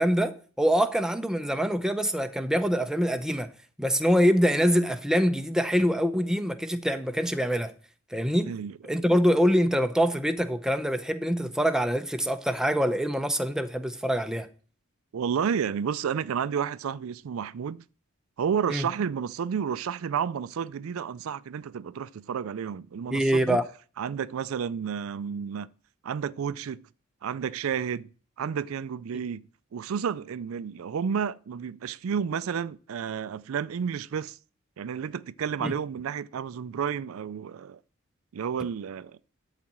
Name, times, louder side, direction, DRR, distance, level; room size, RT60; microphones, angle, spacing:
voice 1, 0.0-3.5 3.8-7.7 8.1-8.5 8.8-14.5 18.7-18.8 23.1-23.6 35.6-35.7, equal, 5° right, 0.6 m, -24 dB
voice 2, 15.1-17.8 18.4-23.6 24.0-25.7 26.0-26.9 27.2-28.1 28.4-29.4 29.7-34.4 34.8-37.8 38.3-39.2, right 7 dB, 75° right, 0.4 m, -31 dB
12.5 x 4.1 x 7.4 m
head